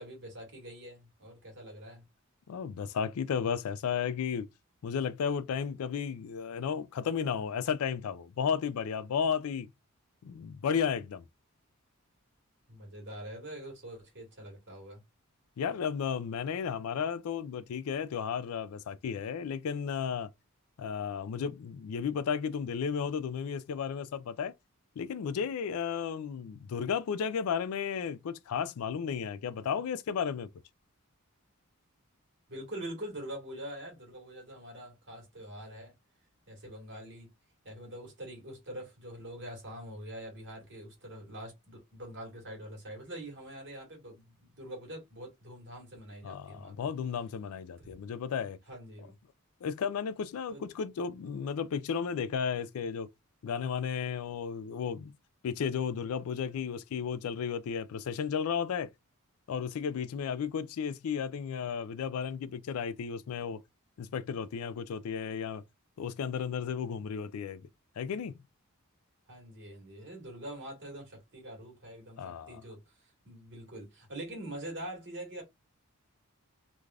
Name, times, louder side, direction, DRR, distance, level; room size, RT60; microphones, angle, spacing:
voice 1, 0.0-2.0 12.7-15.0 32.5-35.9 36.5-37.3 37.6-46.8 47.8-48.0 48.7-49.1 50.5-50.7 69.3-75.4, right 1 dB, 55° right, 1.6 m, -44 dB
voice 2, 2.5-4.5 4.8-9.7 10.2-11.2 15.6-20.3 20.8-24.5 25.0-30.5 46.2-48.6 49.6-53.1 53.4-55.1 55.4-58.9 59.5-63.6 64.0-65.6 66.0-67.6 68.0-68.3 72.2-72.6, left 7 dB, 75° left, 0.3 m, -33 dB
3.2 x 2.5 x 2.3 m
head